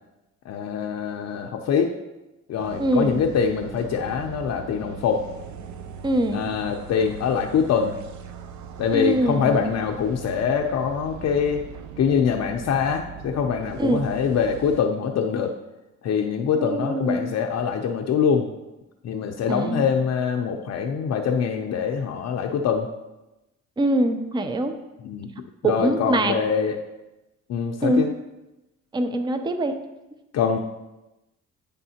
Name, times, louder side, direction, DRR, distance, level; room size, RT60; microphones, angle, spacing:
voice 1, 0.5-2.0 2.5-5.2 6.3-8.0 8.8-11.6 12.0-15.5 16.0-18.5 19.0-22.9 25.0-25.3 25.6-26.8 27.5-28.1 30.3-30.6, left 6 dB, 60° left, 2 dB, 0.6 m, -24 dB
sound 1, 2.6-14.8, right 7 dB, 70° right, 0.6 m, -40 dB
voice 2, 2.8-3.2 6.0-6.5 8.9-9.7 13.8-14.0 16.6-17.3 19.5-19.9 23.8-24.7 25.6-26.4 27.8-28.1 28.9-29.8, right 1 dB, 15° right, 8 dB, 0.5 m, -23 dB
9.9 x 3.5 x 2.8 m, 0.99 s
cardioid pair, 90°, 30 cm